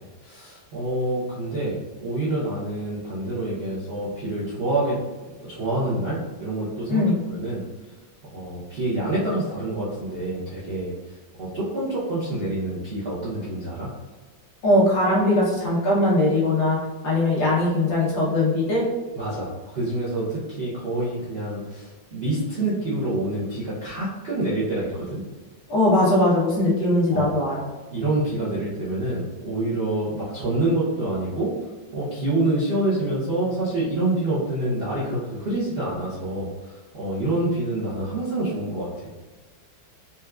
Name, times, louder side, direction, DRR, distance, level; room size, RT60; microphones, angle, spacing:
voice 1, 0.2-5.0 5.4-7.6 8.3-10.9 11.4-13.9 19.1-25.2 27.1-27.3 27.9-31.5 31.9-39.1, right 2 dB, 70° right, -10 dB, 0.5 m, -27 dB
voice 2, 6.9-7.2 14.6-16.8 17.0-18.9 25.7-27.7, left 1 dB, 75° left, -5 dB, 1.6 m, -20 dB
4.4 x 2.2 x 2.3 m, 1.3 s
omnidirectional pair, 2.1 m